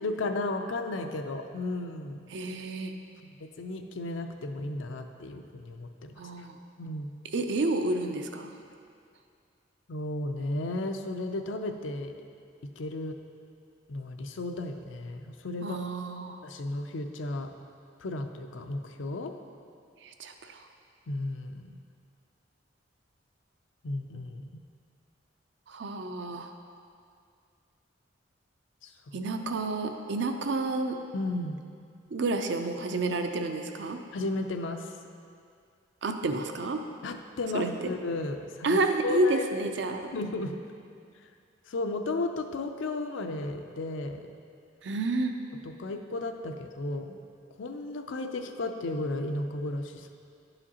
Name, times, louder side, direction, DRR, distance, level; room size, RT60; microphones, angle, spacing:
voice 1, 0.0-2.3 3.4-6.2 6.8-7.1 9.9-12.1 12.8-13.2 13.9-15.8 16.4-17.5 18.0-19.3 21.1-21.8 23.8-24.4 28.8-28.9 31.1-31.6 34.1-34.9 37.0-39.4 40.1-40.6 41.7-44.2 45.6-47.2 47.6-50.1, left 2 dB, 80° left, 6 dB, 0.5 m, -34 dB
voice 2, 2.3-2.9 6.2-6.6 7.3-8.5 15.6-16.4 20.0-20.6 25.7-26.5 29.1-31.0 32.1-34.0 36.0-36.8 37.5-37.9 38.6-40.1 44.8-45.3, right 2 dB, 70° right, 6 dB, 0.5 m, -30 dB
11.5 x 4.9 x 2.9 m, 2.3 s
head